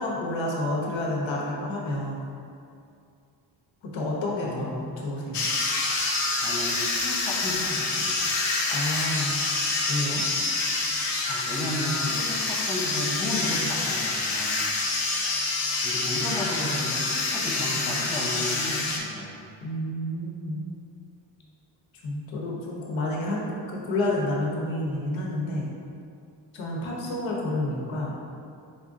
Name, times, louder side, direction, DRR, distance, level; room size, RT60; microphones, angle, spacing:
voice 1, 0.0-2.2 3.9-5.4 8.7-9.4 9.9-10.2 19.6-20.6 22.0-25.7 26.5-28.1, left 1 dB, 85° left, -3 dB, 0.9 m, -29 dB
voice 2, 4.4-4.8 6.3-8.3 11.3-14.6 15.8-19.4, left 1 dB, 10° left, -4 dB, 0.5 m, -33 dB
sound 1, 5.3-19.0, left 3 dB, 50° left, 0.6 m, -27 dB
4.2 x 2.5 x 3.7 m, 2.4 s
wide cardioid pair, 130°, 45 cm